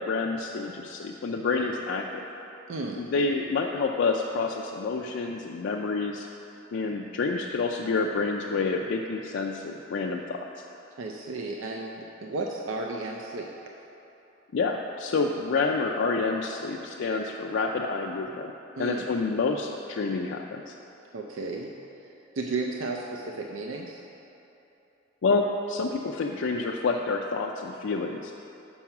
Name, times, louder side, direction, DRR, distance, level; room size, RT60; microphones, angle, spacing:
voice 1, 0.0-2.2 3.0-6.3 6.7-10.5 14.5-18.5 18.8-20.7 25.2-28.3, left 4 dB, 65° left, 0 dB, 0.4 m, -28 dB
voice 2, 2.7-3.0 11.0-13.5 18.8-19.1 21.1-21.7 22.4-24.0, right 3 dB, 80° right, 0 dB, 0.5 m, -33 dB
7.2 x 5.5 x 5.8 m, 3.0 s
head